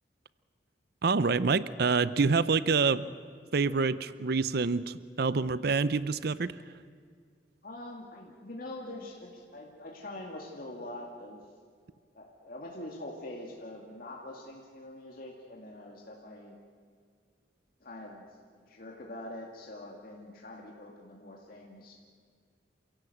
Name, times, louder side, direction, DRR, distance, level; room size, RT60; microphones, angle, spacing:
voice 1, 1.0-3.1 3.5-6.6, right 4 dB, 60° right, 16 dB, 0.6 m, -27 dB
voice 2, 7.6-11.4 12.1-16.6 17.8-18.3 18.5-22.1, left 1 dB, 50° left, -1 dB, 2.3 m, -44 dB
28.0 x 17.0 x 8.0 m, 2.1 s
head